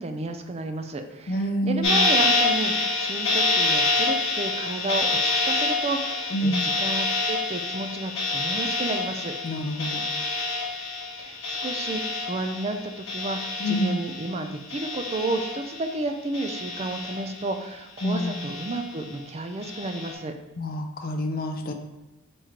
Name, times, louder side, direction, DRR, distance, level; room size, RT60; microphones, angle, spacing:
voice 1, 0.0-9.3 11.2-12.8 13.1-20.3, right 2 dB, 30° right, 6 dB, 0.4 m, -32 dB
voice 2, 1.3-2.1 6.3-6.7 9.4-10.1 13.6-14.0 18.0-18.3 20.6-21.7, equal, 45° left, 5 dB, 0.5 m, -27 dB
sound 1, 1.8-14.4 14.7-15.9 16.3-17.6 18.0-19.0 19.6-20.1, left 3 dB, 60° left, 1.0 m, -27 dB
4.3 x 3.1 x 3.7 m, 1.0 s
head